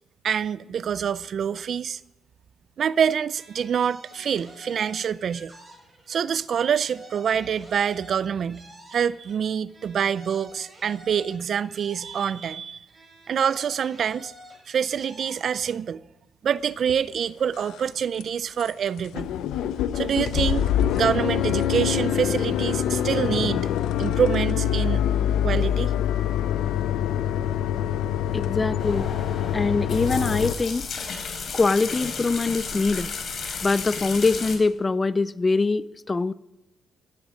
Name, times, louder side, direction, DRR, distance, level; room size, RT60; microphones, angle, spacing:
voice 1, 0.2-2.0 2.8-5.5 6.1-8.6 8.9-12.8 13.3-14.3 14.7-16.0 16.4-19.3 19.9-20.7 20.9-23.7 24.0-25.1 25.4-25.9, right 8 dB, 55° right, 0.5 m, -26 dB
sound 1, 3.3-6.2 6.5-9.4 9.7-12.6 12.9-15.8, equal, 30° right, 6.4 m, -49 dB
sound 2, 16.9-17.0 17.5-17.9 18.2-18.3 18.6-18.7 19.0-30.5, left 10 dB, 85° left, 0.6 m, -25 dB
voice 2, 28.3-29.1 29.5-30.9 31.5-33.1 33.6-36.3, left 3 dB, 25° left, 0.5 m, -23 dB
sound 3, 28.8-34.6, left 5 dB, 55° left, 3.5 m, -33 dB
14.5 x 13.5 x 5.1 m
cardioid pair, 90°, 0 cm